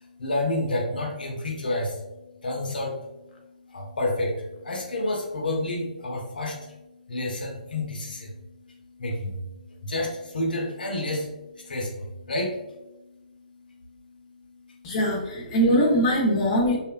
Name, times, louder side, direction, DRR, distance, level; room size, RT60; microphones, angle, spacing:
voice 1, 0.2-1.9 2.4-2.9 3.7-4.3 4.6-6.5 7.1-8.2 9.0-9.3 9.8-10.1 10.3-11.2 11.7-11.9 12.3-12.5, left 2 dB, 85° left, 0 dB, 0.6 m, -28 dB
voice 2, 14.8-16.8, equal, 35° left, -2 dB, 0.6 m, -22 dB
2.7 x 2.2 x 2.3 m, 1.0 s
hypercardioid pair, 145°, 5 cm